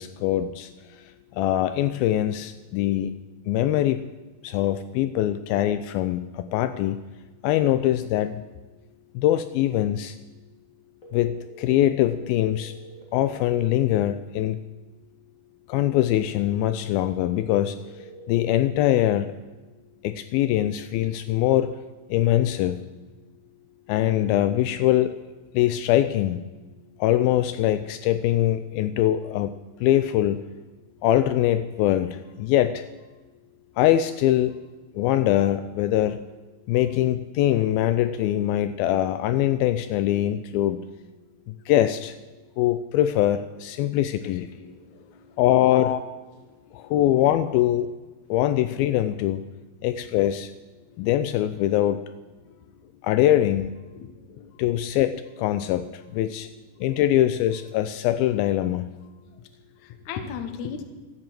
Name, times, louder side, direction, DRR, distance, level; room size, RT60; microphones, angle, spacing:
voice 1, 0.0-3.2 3.5-4.1 4.4-7.0 7.4-8.4 9.2-10.2 11.1-12.7 13.1-14.6 15.7-19.3 20.0-21.8 22.1-22.8 23.9-25.2 25.5-26.4 27.0-29.5 29.8-30.4 31.0-32.9 33.8-34.6 34.9-36.2 36.7-40.8 41.5-42.2 42.6-44.5 45.4-45.9 46.7-47.9 48.3-49.4 49.8-50.5 51.0-52.0 53.0-53.8 54.6-56.5 56.8-58.9, left 13 dB, 85° left, 11 dB, 2.2 m, -23 dB
sound 1, 11.0-13.0 17.0-19.0, right 1 dB, 40° left, 1.1 m, -45 dB
voice 2, 44.1-45.4 45.7-46.0 46.4-46.9 47.2-47.4 50.8-51.1 52.4-53.0 53.9-54.6 56.7-56.9 59.3-59.5 59.8-60.8, left 8 dB, 65° left, 7 dB, 2.0 m, -37 dB
13.5 x 8.5 x 7.7 m, 1.2 s
omnidirectional pair, 4.6 m